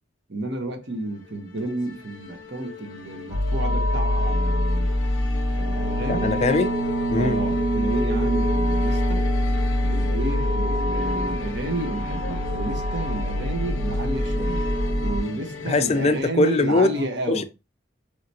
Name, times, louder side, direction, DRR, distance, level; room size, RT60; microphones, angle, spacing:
voice 1, 0.3-4.9 5.6-6.4 7.1-9.2 9.8-14.6 15.0-17.4, right 2 dB, 60° right, 1.0 m, -31 dB
sound 1, 0.8-16.2, left 5 dB, 90° left, 0.7 m, -38 dB
sound 2, 3.3-15.2, equal, 25° right, 2.2 m, -24 dB
voice 2, 6.1-6.7 7.1-7.4 15.7-16.9 17.3-17.4, left 3 dB, 30° left, 0.4 m, -21 dB
4.7 x 3.2 x 2.7 m
head